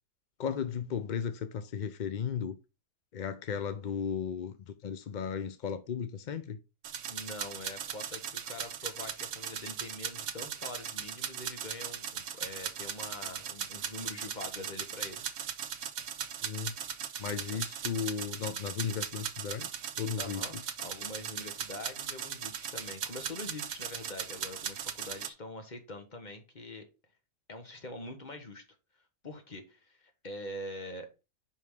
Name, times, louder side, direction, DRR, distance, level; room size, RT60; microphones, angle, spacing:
voice 1, 0.4-2.6 3.1-6.6 16.4-16.7 17.2-19.7 20.0-20.6, left 7 dB, 60° left, 0.5 m, -35 dB
sound 1, 6.8-25.3, right 8 dB, 65° right, 1.1 m, -39 dB
voice 2, 7.0-15.2 17.5-17.6 20.2-26.9 27.5-28.6 29.2-31.1, left 2 dB, 35° left, 1.4 m, -44 dB
5.4 x 5.4 x 4.7 m
omnidirectional pair, 1.5 m